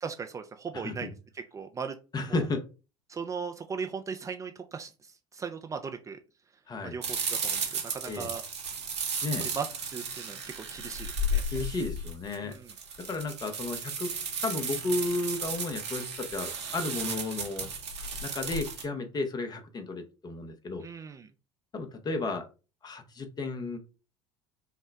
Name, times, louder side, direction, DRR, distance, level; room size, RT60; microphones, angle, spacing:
voice 1, 0.0-1.1 1.3-2.0 2.2-2.4 3.1-6.2 6.8-8.4 9.4-11.4 12.4-12.7 20.8-21.3, right 5 dB, 20° right, 6 dB, 0.5 m, -38 dB
voice 2, 0.7-1.1 2.1-2.7 6.7-6.9 8.1-8.3 9.2-9.5 11.5-12.6 13.1-14.1 14.4-17.7 18.2-20.8 21.7-22.5 22.8-23.8, left 3 dB, 30° left, 7 dB, 0.9 m, -33 dB
sound 1, 7.0-18.8, right 2 dB, 75° right, 1.1 m, -34 dB
5.7 x 2.2 x 3.4 m, 0.32 s
figure-of-eight pair, 70°, 14 cm